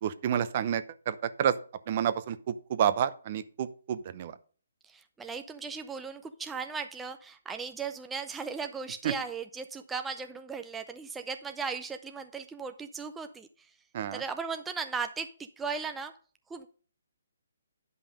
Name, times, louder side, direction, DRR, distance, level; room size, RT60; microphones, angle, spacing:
voice 1, 0.0-1.6 1.9-2.4 2.7-4.3 9.0-9.1 13.9-14.2, right 9 dB, 40° right, 13 dB, 0.8 m, -29 dB
voice 2, 4.8-13.7 14.1-16.2 16.5-16.7, right 5 dB, 10° right, 7 dB, 0.5 m, -37 dB
10.0 x 5.6 x 5.2 m, 0.40 s
hypercardioid pair, 145°, 0 cm